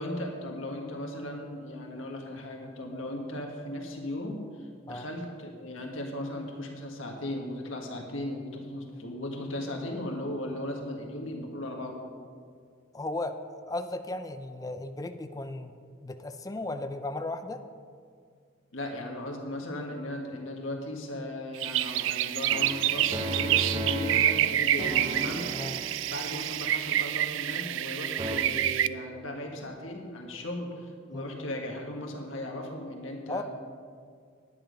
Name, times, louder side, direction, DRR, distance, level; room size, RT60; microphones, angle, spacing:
voice 1, 0.0-12.0 18.7-33.4, left 1 dB, 75° left, 1 dB, 1.6 m, -37 dB
voice 2, 12.9-17.6 25.5-25.8 31.1-31.3 33.3-33.4, left 2 dB, 20° left, 7 dB, 0.4 m, -36 dB
sound 1, 21.5-28.9, right 12 dB, 65° right, 0.3 m, -28 dB
sound 2, 22.5-27.9 28.2-28.4, equal, 25° right, 0.7 m, -36 dB
10.5 x 9.4 x 5.2 m, 2.1 s
head